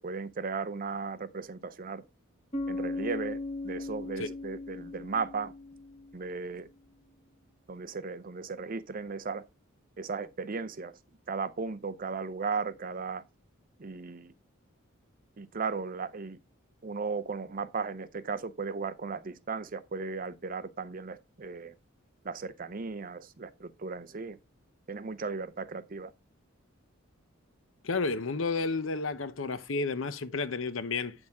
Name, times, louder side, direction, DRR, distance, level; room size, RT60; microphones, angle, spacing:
voice 1, 0.0-2.0 2.7-3.4 3.6-5.5 6.1-6.7 7.7-9.4 10.0-10.9 11.3-13.2 13.8-14.3 15.4-16.4 16.8-21.7 22.2-24.4 24.9-26.1, right 4 dB, 40° right, 0.6 m, -36 dB
Bass guitar, 2.5-6.4, left 2 dB, 30° left, 1.2 m, -37 dB
voice 2, 27.8-31.1, left 4 dB, 65° left, 0.8 m, -31 dB
8.8 x 6.4 x 3.6 m
head